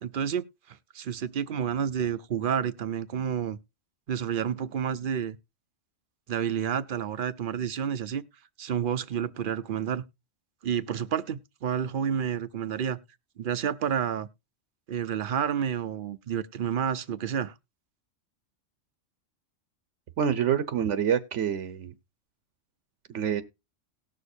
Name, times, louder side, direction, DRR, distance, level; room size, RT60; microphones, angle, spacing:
voice 1, 0.0-3.6 4.1-5.4 6.3-8.2 8.6-10.0 10.6-13.0 13.4-14.3 14.9-17.5, right 8 dB, 55° right, 0.7 m, -30 dB
voice 2, 20.2-21.9 23.1-23.4, right 8 dB, 75° right, 1.1 m, -26 dB
18.5 x 6.5 x 2.6 m
omnidirectional pair, 1.3 m